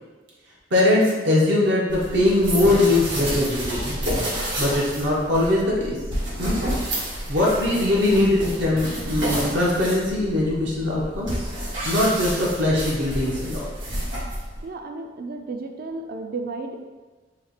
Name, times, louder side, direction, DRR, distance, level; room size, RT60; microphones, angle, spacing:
voice 1, 0.7-4.0 4.6-6.0 6.4-6.6 7.3-11.5 11.8-13.7, left 1 dB, 70° right, -5 dB, 0.8 m, -21 dB
sound 1, 1.9-14.6, equal, 85° right, 1.5 m, -30 dB
voice 2, 14.6-16.8, right 3 dB, 55° right, 4 dB, 0.4 m, -33 dB
3.1 x 2.8 x 4.0 m, 1.3 s
head